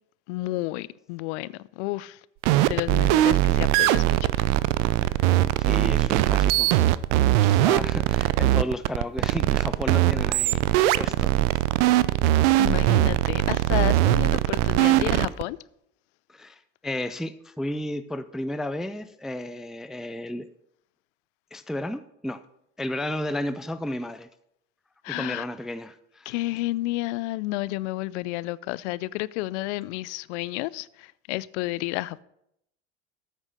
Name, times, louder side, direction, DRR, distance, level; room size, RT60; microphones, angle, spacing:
voice 1, 0.3-2.2 2.7-4.3 5.2-5.4 12.6-15.6 25.0-25.4 26.3-32.2, left 19 dB, 65° left, 0.5 m, -31 dB
sound 1, 2.4-15.4, right 15 dB, 70° right, 0.5 m, -21 dB
voice 2, 5.6-6.7 7.3-11.4 16.3-20.5 21.5-22.4 22.8-24.3 25.1-26.3, left 1 dB, ahead, 0.3 m, -33 dB
9.0 x 6.2 x 6.2 m
hypercardioid pair, 80°, 37 cm